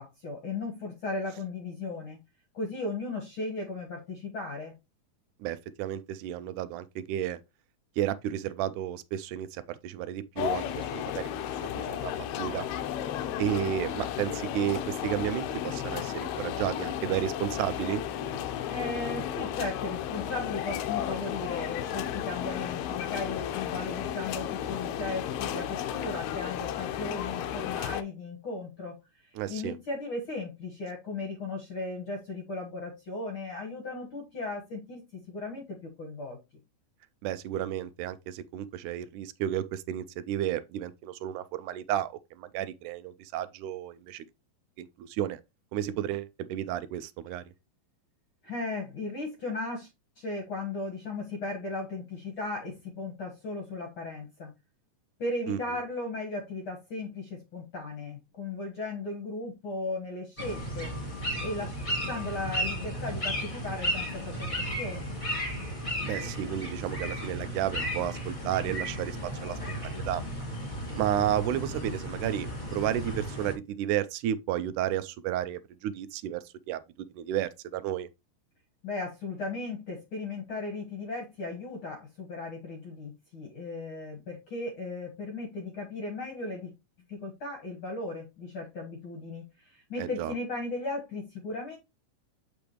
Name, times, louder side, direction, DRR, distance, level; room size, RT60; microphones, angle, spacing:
voice 1, 0.0-2.2 2.5-4.7 18.7-28.9 29.5-36.4 48.4-49.9 50.2-54.5 55.2-60.9 61.4-61.7 62.0-65.1 78.8-86.7 87.1-91.8, left 2 dB, 50° left, 1.7 m, -36 dB
voice 2, 5.4-7.4 8.0-12.7 13.4-18.0 29.4-29.8 37.2-44.3 44.8-45.4 45.7-47.4 55.5-55.8 66.0-70.2 71.0-78.1 90.0-90.3, right 11 dB, 80° right, 1.8 m, -32 dB
sound 1, 10.4-28.0, left 10 dB, 75° left, 1.8 m, -33 dB
sound 2, 60.4-73.5, equal, 15° left, 2.1 m, -34 dB
7.0 x 5.1 x 3.0 m
omnidirectional pair, 3.9 m